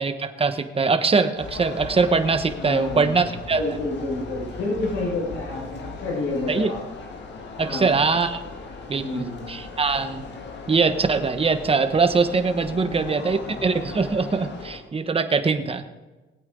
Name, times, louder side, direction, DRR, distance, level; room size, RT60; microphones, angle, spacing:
voice 1, 0.0-3.8 6.5-6.7 7.6-8.4 8.9-10.2 10.7-15.8, right 4 dB, 30° right, 9 dB, 1.2 m, -22 dB
sound 1, 1.4-14.8, left 4 dB, 65° left, 2.2 m, -38 dB
voice 2, 2.5-3.3 3.5-6.8 7.6-8.0 8.9-9.4 12.7-13.5, left 2 dB, 90° left, -5 dB, 5.4 m, -30 dB
20.5 x 8.6 x 3.9 m, 1.2 s
cardioid pair, 90°, 20 cm